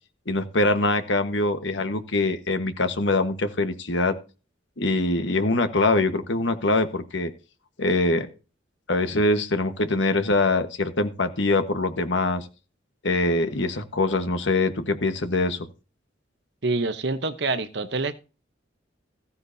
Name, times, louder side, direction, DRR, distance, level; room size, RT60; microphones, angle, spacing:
voice 1, 0.3-4.2 4.8-7.3 7.8-8.3 8.9-12.5 13.0-15.7, left 2 dB, 75° left, 1.4 m, -23 dB
voice 2, 16.6-18.1, right 3 dB, 60° right, 1.0 m, -26 dB
15.5 x 9.5 x 2.8 m
head